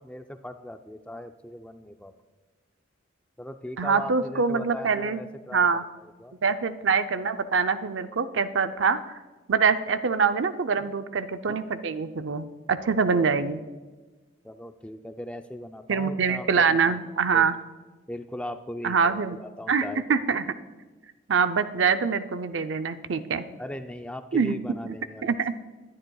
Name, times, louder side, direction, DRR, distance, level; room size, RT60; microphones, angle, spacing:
voice 1, 0.0-2.1 3.4-5.7 6.0-6.3 10.8-10.9 11.4-11.6 14.4-17.5 18.1-20.0 23.6-25.4, left 1 dB, 5° left, 7 dB, 0.4 m, -39 dB
voice 2, 3.8-5.2 5.5-5.8 6.4-9.2 9.5-13.6 15.9-17.6 18.8-19.4 19.7-20.6 21.3-23.4 24.3-24.6 24.9-25.0 25.2-25.5, right 5 dB, 70° right, 10 dB, 0.5 m, -24 dB
20.5 x 10.5 x 2.3 m, 1.3 s
head